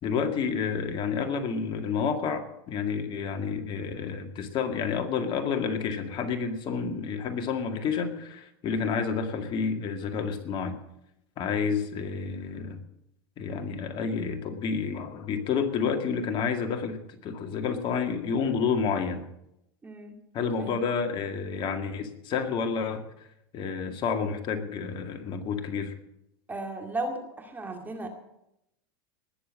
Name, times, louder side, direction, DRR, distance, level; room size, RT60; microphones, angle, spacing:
voice 1, 0.0-10.8 11.4-12.8 13.4-19.3 20.3-23.3 23.5-25.9, left 6 dB, 40° left, 6 dB, 2.0 m, -30 dB
voice 2, 19.8-20.2 20.6-20.8 26.5-28.1, right 2 dB, 15° right, 3 dB, 2.2 m, -35 dB
19.5 x 7.1 x 7.5 m, 0.83 s
hypercardioid pair, 115°, 13 cm